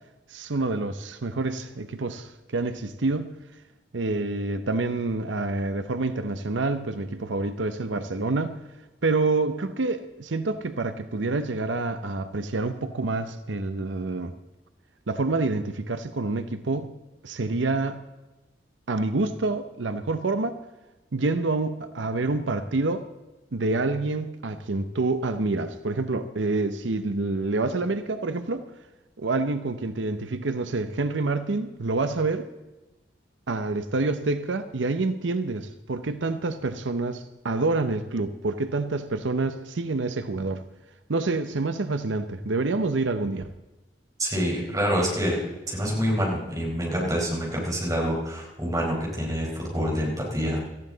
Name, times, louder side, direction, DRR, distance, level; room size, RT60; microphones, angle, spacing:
voice 1, 0.3-3.3 3.9-8.6 9.0-14.3 15.1-16.9 17.2-18.0 18.9-20.6 21.1-23.0 23.5-28.7 29.2-32.5 33.5-40.6 41.1-43.5, right 3 dB, 90° right, 10 dB, 0.7 m, -27 dB
voice 2, 44.2-45.4 45.7-50.6, equal, 20° right, -3 dB, 4.4 m, -26 dB
18.0 x 14.0 x 4.0 m, 1.1 s
head